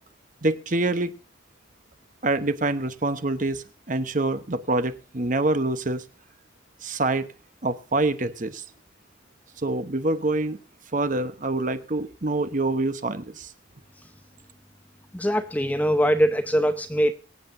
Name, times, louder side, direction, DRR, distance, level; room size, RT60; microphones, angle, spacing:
voice 1, 0.4-1.1 2.2-6.0 6.8-7.3 7.6-8.6 9.6-10.6 10.9-13.5, right 2 dB, 40° right, 11 dB, 0.9 m, -26 dB
voice 2, 15.1-17.1, equal, 10° left, 9 dB, 0.7 m, -22 dB
24.0 x 8.8 x 2.6 m, 0.33 s
head